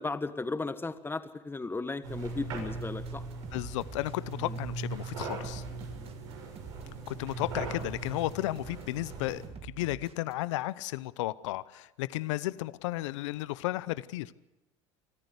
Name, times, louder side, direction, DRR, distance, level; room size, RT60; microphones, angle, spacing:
voice 1, 0.0-3.2 4.4-4.6 6.0-6.1, left 3 dB, 15° left, 11 dB, 1.5 m, -35 dB
sound 1, 2.0-9.5, right 3 dB, 80° right, 7.3 m, -39 dB
sound 2, 2.6-10.3, right 6 dB, 40° right, 2.0 m, -48 dB
voice 2, 3.5-5.6 7.1-14.3, left 17 dB, 80° left, 18 dB, 0.7 m, -34 dB
25.0 x 14.5 x 8.2 m, 0.98 s
hypercardioid pair, 85°, 15 cm